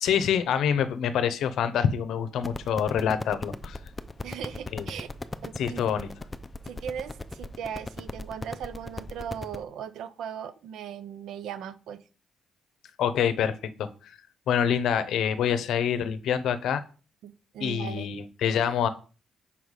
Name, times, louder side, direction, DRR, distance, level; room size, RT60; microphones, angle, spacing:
voice 1, 0.0-3.8 4.7-4.9 5.6-6.1 13.0-13.9 14.5-16.8 17.6-18.9, left 8 dB, 75° left, 12 dB, 0.7 m, -26 dB
sound 1, 2.4-9.6, left 2 dB, 20° left, 0.5 m, -37 dB
voice 2, 4.2-5.1 5.4-5.9 6.6-12.0 17.2-18.1, right 8 dB, 80° right, 13 dB, 0.6 m, -38 dB
5.8 x 4.0 x 4.8 m, 0.37 s
cardioid pair, 90°, 0 cm